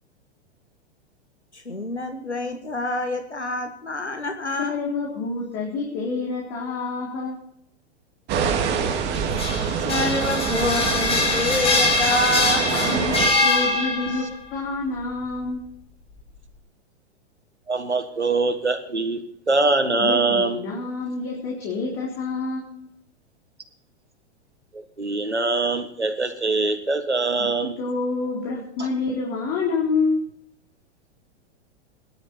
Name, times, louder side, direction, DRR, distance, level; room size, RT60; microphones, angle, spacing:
voice 1, 1.5-4.7 9.8-12.9, left 1 dB, 90° left, 6 dB, 1.7 m, -27 dB
voice 2, 4.6-7.4 12.7-13.2 13.4-14.2 14.5-15.6 20.0-22.9 27.4-27.5 27.8-30.2, left 4 dB, 40° left, -3 dB, 4.2 m, -27 dB
sound 1, 8.3-13.3, right 6 dB, 30° right, 2.4 m, -25 dB
sound 2, 9.1-14.3, left 3 dB, 15° left, 3.2 m, -23 dB
voice 3, 17.7-20.6 24.7-27.8 28.8-28.9, right 3 dB, 90° right, 9 dB, 2.0 m, -23 dB
18.5 x 12.0 x 4.4 m, 0.69 s
figure-of-eight pair, 100°, 33 cm